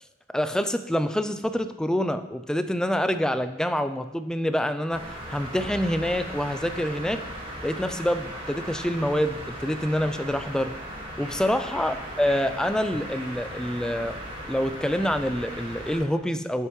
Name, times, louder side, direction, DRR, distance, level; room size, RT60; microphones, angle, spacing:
voice 1, 0.3-5.0 5.3-7.2 7.6-10.7 11.2-14.2 14.5-16.7, equal, 5° left, 9 dB, 0.3 m, -26 dB
sound 1, 4.9-16.0, equal, 30° right, 1.8 m, -37 dB
9.6 x 6.5 x 3.1 m, 1.0 s
head